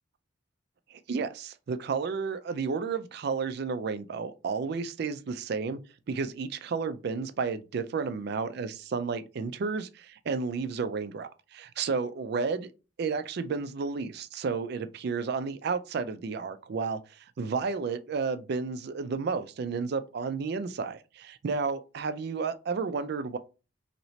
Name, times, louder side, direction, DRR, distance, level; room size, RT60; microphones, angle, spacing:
voice 1, 0.9-5.8 6.1-12.7 13.0-23.4, right 5 dB, 60° right, 0.4 m, -32 dB
2.9 x 2.8 x 3.0 m
head